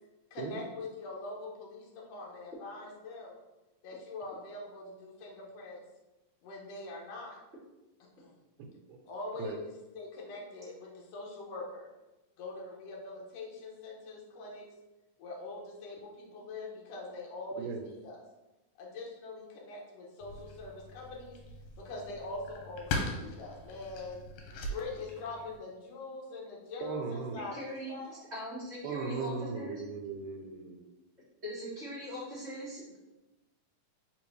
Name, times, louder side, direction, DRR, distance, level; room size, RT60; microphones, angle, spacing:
voice 1, 0.3-3.4 3.8-5.8 6.4-7.4 8.2-8.3 9.1-11.9 12.4-14.6 15.2-18.2 18.8-21.4 21.8-24.3 24.6-28.2, left 3 dB, 65° left, -2 dB, 1.8 m, -43 dB
sound 1, 20.2-25.6, left 2 dB, 85° left, 2.2 m, -40 dB
voice 2, 26.8-27.4 28.8-30.8, right 5 dB, 85° right, 3 dB, 2.2 m, -37 dB
voice 3, 27.4-29.8 31.4-33.0, equal, 40° right, -10 dB, 0.9 m, -41 dB
4.6 x 3.7 x 3.1 m, 1.0 s
omnidirectional pair, 3.7 m